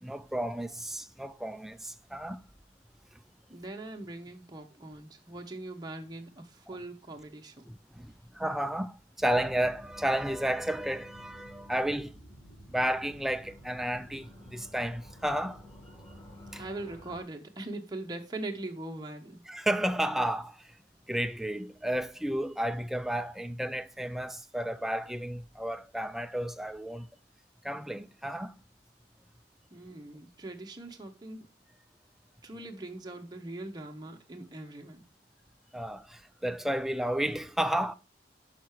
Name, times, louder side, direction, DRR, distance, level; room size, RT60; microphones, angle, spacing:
voice 1, 0.0-2.4 3.1-3.2 7.7-12.2 12.7-15.6 16.5-16.6 19.5-20.8 21.1-27.1 27.6-28.5 35.7-37.9, right 1 dB, ahead, 0.4 m, -32 dB
voice 2, 3.5-7.7 16.6-19.4 29.7-31.4 32.4-35.0, right 2 dB, 20° right, 0.8 m, -41 dB
sound 1, 9.2-17.2, equal, 20° left, 1.5 m, -51 dB
6.1 x 5.7 x 4.7 m
head